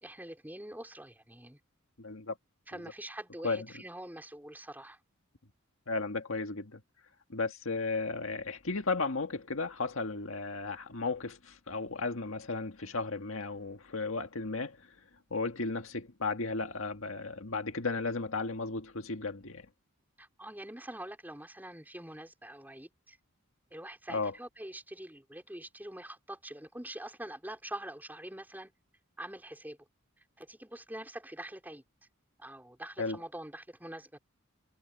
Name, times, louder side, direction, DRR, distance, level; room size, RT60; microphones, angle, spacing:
voice 1, 0.0-1.6 2.7-5.0 20.2-23.2 23.7-28.7 29.2-29.8 30.4-31.8 32.4-34.2, right 1 dB, 10° right, 4.9 m, -45 dB
voice 2, 2.0-2.4 3.4-3.7 5.9-6.8 7.3-14.9 15.3-19.7 24.1-24.3 33.0-33.2, left 3 dB, 70° left, 1.8 m, -34 dB
head